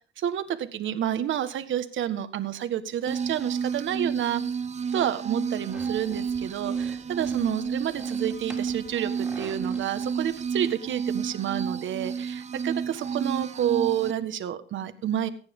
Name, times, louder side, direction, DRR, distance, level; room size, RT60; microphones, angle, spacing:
voice 1, 0.2-4.4 4.9-15.3, right 10 dB, 75° right, 10 dB, 1.6 m, -29 dB
sound 1, 3.1-14.1, right 6 dB, 35° right, 0.6 m, -31 dB
sound 2, 5.7-10.7, right 1 dB, 5° right, 3.8 m, -48 dB
21.5 x 9.6 x 3.7 m, 0.39 s
cardioid pair, 90°, 20 cm